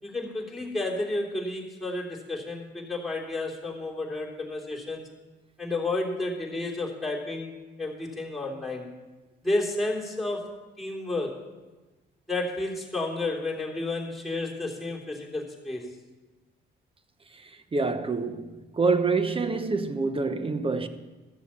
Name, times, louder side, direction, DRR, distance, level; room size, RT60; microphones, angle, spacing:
voice 1, 0.0-5.1 5.6-7.5 7.8-8.9 9.4-10.5 10.8-11.4 12.3-15.9, left 2 dB, ahead, 3.2 m, -31 dB
voice 2, 17.4-20.9, right 4 dB, 25° right, 0.9 m, -27 dB
14.0 x 7.1 x 7.4 m
cardioid pair, 90°, 20 cm